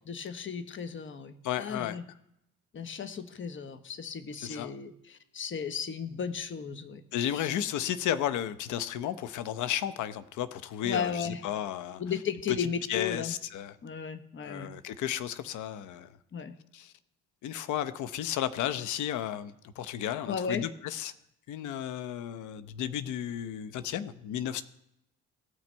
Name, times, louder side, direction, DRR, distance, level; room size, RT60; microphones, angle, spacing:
voice 1, 0.1-2.0 2.7-7.0 7.3-7.5 10.8-11.4 12.0-13.3 13.8-14.7 16.3-16.5 20.3-20.7, left 6 dB, 40° left, 10 dB, 1.2 m, -35 dB
voice 2, 1.4-2.0 4.4-4.7 7.1-12.0 12.6-13.8 14.4-16.1 16.7-16.9 17.4-21.1 21.5-24.6, left 10 dB, 70° left, 13 dB, 0.8 m, -33 dB
17.5 x 6.0 x 4.5 m, 0.80 s
supercardioid pair, 80°, 31 cm